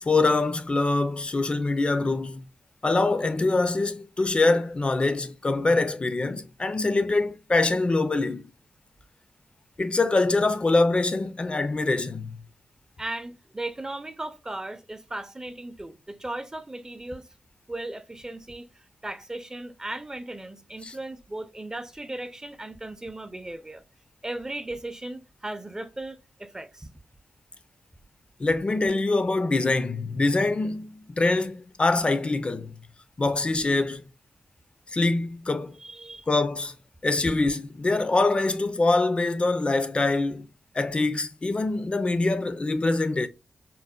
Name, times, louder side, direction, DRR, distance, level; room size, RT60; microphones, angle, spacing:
voice 1, 0.0-2.4 2.8-8.4 9.8-12.4 20.8-20.9 28.4-32.8 33.2-34.0 34.9-35.8 36.3-36.7 37.0-40.5 40.7-43.3, left 3 dB, 40° left, 0.4 m, -24 dB
voice 2, 13.0-17.3 17.7-23.8 24.2-26.9 35.8-36.3, right 2 dB, 20° right, 0.5 m, -37 dB
3.8 x 2.0 x 2.2 m
cardioid pair, 45°, 3 cm